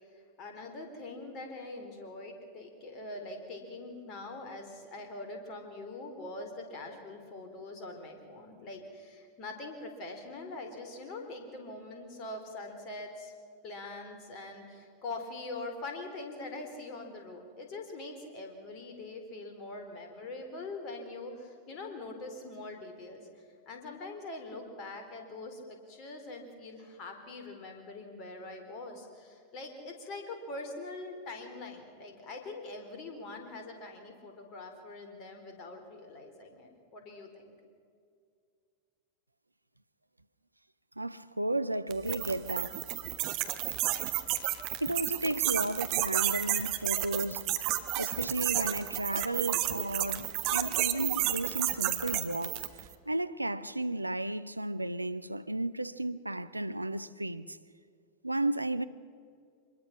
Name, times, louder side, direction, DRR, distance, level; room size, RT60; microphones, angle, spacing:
voice 1, 0.1-13.3 13.6-25.6 25.9-37.5, left 2 dB, 35° left, 4.2 m, -43 dB
voice 2, 41.0-42.8 44.8-47.5 48.0-57.6 58.2-58.8, right 1 dB, 85° right, 0.6 m, -33 dB
sound 1, 41.9-52.8, right 15 dB, 40° right, 1.3 m, -31 dB
25.0 x 21.5 x 6.0 m
figure-of-eight pair, 90°, 0 cm